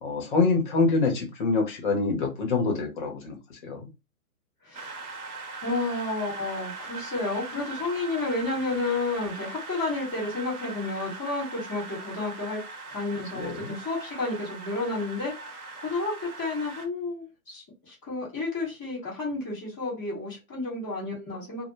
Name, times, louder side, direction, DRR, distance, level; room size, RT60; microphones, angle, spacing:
voice 1, 0.0-3.4 3.7-3.9 13.3-13.7, left 4 dB, 35° left, 2 dB, 0.7 m, -25 dB
voice 2, 4.6-5.0 5.6-12.6 12.9-21.7, left 3 dB, 5° left, -19 dB, 0.4 m, -31 dB
sound 1, 4.7-16.9, right 4 dB, 75° right, 0.8 m, -40 dB
2.0 x 2.0 x 3.0 m, 0.26 s
hypercardioid pair, 140°, 44 cm